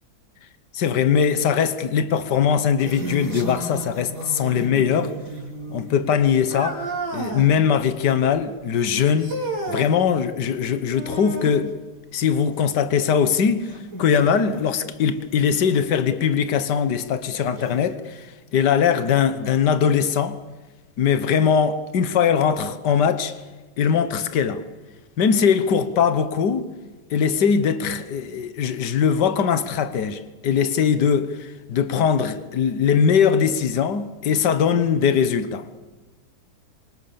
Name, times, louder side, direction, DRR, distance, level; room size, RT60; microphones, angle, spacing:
voice 1, 0.7-5.1 5.7-6.8 7.1-9.3 9.7-11.8 12.1-13.7 14.0-20.4 21.0-23.4 23.8-24.6 25.2-26.7 27.1-35.7, left 7 dB, 75° left, 1.9 m, -21 dB
sound 1, 2.5-7.6 8.0-8.4 8.9-9.0 9.2-9.3 9.7-9.8 11.1-11.2 12.2-12.5 13.0-13.1 13.5-15.1 15.6-16.1 16.8-16.9 17.6-18.0, right 1 dB, 50° right, 4.9 m, -35 dB
sound 2, 6.5-7.5 9.2-9.9 10.9-11.6 13.7-13.8 14.6-14.7 15.7-15.8, right 2 dB, 75° right, 5.1 m, -30 dB
26.5 x 25.5 x 7.0 m
omnidirectional pair, 1.9 m